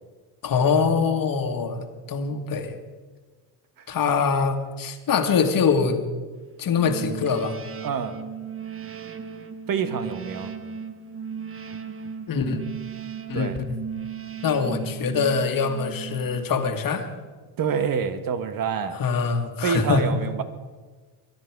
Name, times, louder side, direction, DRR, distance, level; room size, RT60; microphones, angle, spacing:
voice 1, 0.4-2.8 3.9-6.0 6.6-7.6 12.3-12.6 13.3-13.5 14.4-17.1 19.0-20.0, left 5 dB, 45° left, 6 dB, 1.8 m, -23 dB
sound 1, 6.7-16.6, right 6 dB, 30° right, 1.1 m, -36 dB
voice 2, 7.8-8.1 9.7-10.5 13.3-13.6 17.6-19.0 19.6-20.4, right 6 dB, 45° right, 10 dB, 1.5 m, -26 dB
23.0 x 10.0 x 4.7 m, 1.4 s
supercardioid pair, 85°, 46 cm